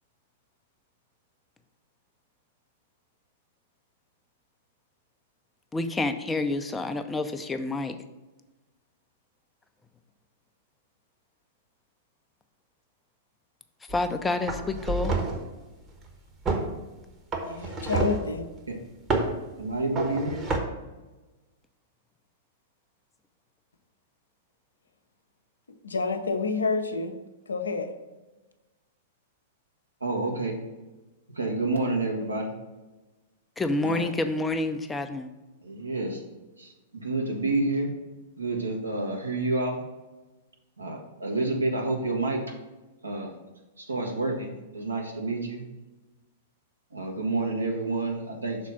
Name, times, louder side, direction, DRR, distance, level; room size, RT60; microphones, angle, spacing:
voice 1, 5.7-8.0 13.9-15.1 33.6-35.3, left 2 dB, 10° left, 7 dB, 0.5 m, -28 dB
sound 1, 13.9-14.1 14.5-15.5 16.4-16.7 17.3-18.3 19.1-19.4 19.9-20.6, right 3 dB, 25° right, 1.1 m, -28 dB
voice 2, 17.4-18.5 25.8-27.1 27.5-27.9, left 4 dB, 75° left, 7 dB, 0.7 m, -28 dB
voice 3, 19.6-20.4 30.0-30.5 31.3-32.5 33.8-34.1 35.6-36.2 36.6-37.9 38.4-39.8 40.8-42.4 43.0-43.3 43.8-45.6 46.9-48.6, right 2 dB, 80° right, 0 dB, 1.4 m, -29 dB
6.0 x 4.1 x 5.7 m, 1.1 s
figure-of-eight pair, 100°, 0 cm